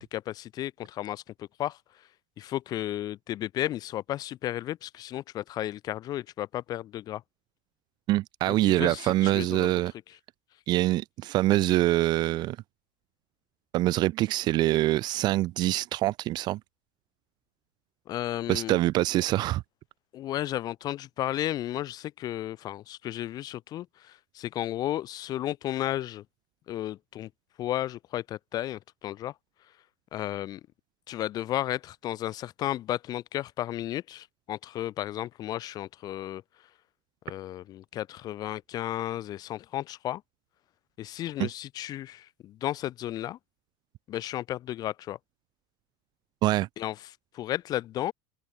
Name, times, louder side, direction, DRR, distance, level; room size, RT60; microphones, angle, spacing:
voice 1, 0.0-1.8 2.4-7.2 8.5-9.7 18.1-18.8 20.1-26.2 26.7-27.3 27.6-29.3 30.1-30.6 31.1-36.4 37.3-40.2 41.0-43.4 44.1-45.2 46.8-48.1, left 13 dB, 30° left, 2.1 m, -33 dB
voice 2, 8.1-9.9 10.7-12.6 13.7-16.6 18.5-19.6 41.4-41.5 46.4-46.7, right 16 dB, 30° right, 0.9 m, -25 dB
open air
supercardioid pair, 175°, 14 cm